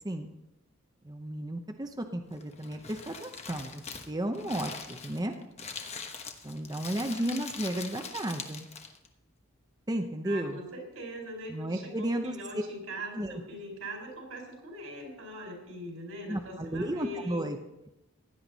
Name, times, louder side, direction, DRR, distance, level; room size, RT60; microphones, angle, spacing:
voice 1, 1.0-5.3 6.4-8.7 9.9-10.6 11.5-12.4 13.1-13.4 16.3-17.6, right 1 dB, 20° right, 4 dB, 0.7 m, -33 dB
Crumpling crinkling, 2.3-9.1, left 5 dB, 30° left, 1.1 m, -43 dB
voice 2, 10.2-17.5, equal, 85° right, 1 dB, 4.8 m, -41 dB
16.0 x 10.5 x 4.1 m, 0.90 s
head